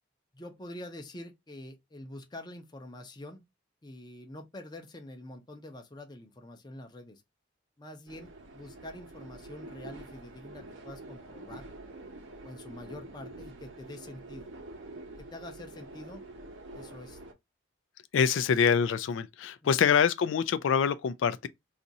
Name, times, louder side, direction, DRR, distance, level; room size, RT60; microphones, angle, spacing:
voice 1, 0.3-3.4 3.8-7.2 7.8-11.6 12.4-14.5 15.2-16.2 16.7-17.2, left 1 dB, 20° left, 0.6 m, -46 dB
sound 1, 8.1-17.3, right 2 dB, 90° right, 0.8 m, -47 dB
voice 2, 18.1-21.5, left 7 dB, 80° left, 0.3 m, -25 dB
2.7 x 2.5 x 4.0 m
head